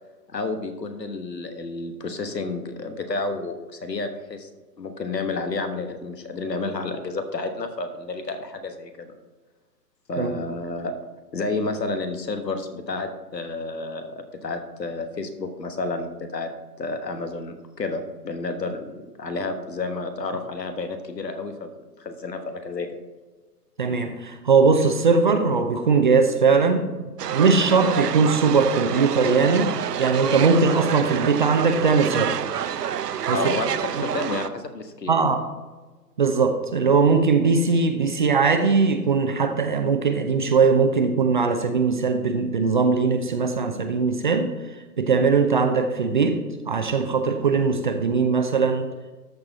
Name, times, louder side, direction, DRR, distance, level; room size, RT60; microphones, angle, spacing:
voice 1, 0.3-4.5 4.8-9.1 10.1-10.9 11.3-16.5 16.8-21.7 22.0-23.0 33.3-35.1, left 3 dB, 80° left, 8 dB, 1.4 m, -30 dB
voice 2, 23.8-29.7 30.0-32.4 33.3-33.4 35.1-35.4 36.2-46.4 46.7-48.9, right 4 dB, 30° right, 7 dB, 0.5 m, -20 dB
sound 1, 27.2-34.5, right 9 dB, 75° right, 0.6 m, -28 dB
13.0 x 4.6 x 4.1 m, 1.3 s
figure-of-eight pair, 135°, 49 cm